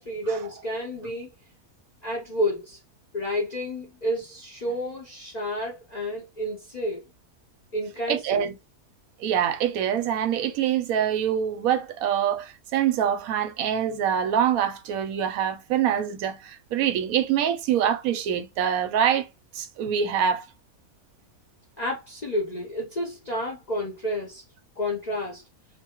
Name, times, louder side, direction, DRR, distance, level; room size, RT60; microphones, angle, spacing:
voice 1, 0.0-1.3 2.0-2.8 3.1-7.0 7.7-8.5 21.8-24.4 24.8-25.4, equal, 75° left, 0.3 m, -30 dB
voice 2, 8.1-8.5 9.2-19.3 19.5-20.4, right 9 dB, 75° right, 1.0 m, -25 dB
2.6 x 2.3 x 2.8 m
omnidirectional pair, 1.6 m